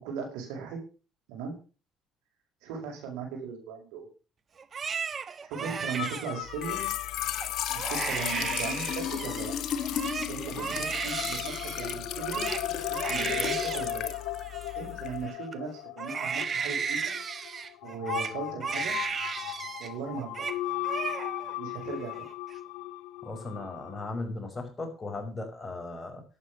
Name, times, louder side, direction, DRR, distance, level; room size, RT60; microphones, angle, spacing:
voice 1, 0.0-0.8 1.3-1.6 2.6-4.1 5.5-6.9 7.7-9.5 10.3-12.5 12.9-14.1 14.8-15.7 15.9-17.2 17.8-18.9 19.8-20.4 21.6-22.2, right 5 dB, 85° right, 2 dB, 6.2 m, -38 dB
Crying sobbing, 4.6-6.9 7.4-7.5 7.8-9.5 9.8-15.5 16.0-19.9 20.2-20.6 20.8-21.6 21.9-22.5, right 6 dB, 40° right, 1.3 m, -35 dB
sound 1, 6.0-24.1, left 16 dB, 80° left, 0.7 m, -38 dB
Trickle dribble / Fill (with liquid), 6.5-15.2, left 9 dB, 65° left, 1.7 m, -35 dB
voice 2, 23.2-26.2, left 2 dB, 25° left, 3 dB, 5.8 m, -37 dB
11.5 x 8.7 x 6.8 m, 0.35 s
supercardioid pair, 80°, 0 cm